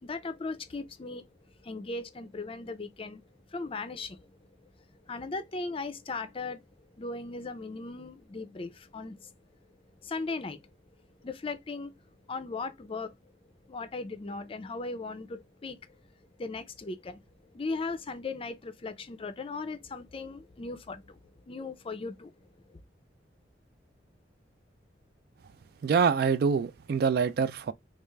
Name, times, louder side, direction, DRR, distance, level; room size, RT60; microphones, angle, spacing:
voice 1, 0.0-1.3 1.6-3.2 3.5-4.4 5.0-6.6 7.0-9.3 10.0-10.7 11.2-11.9 12.3-13.1 13.7-15.8 16.4-17.2 17.5-21.2 21.5-22.3, left 3 dB, 30° left, 0.4 m, -37 dB
voice 2, 25.8-27.7, right 6 dB, 60° right, 0.3 m, -25 dB
3.4 x 2.4 x 3.1 m
head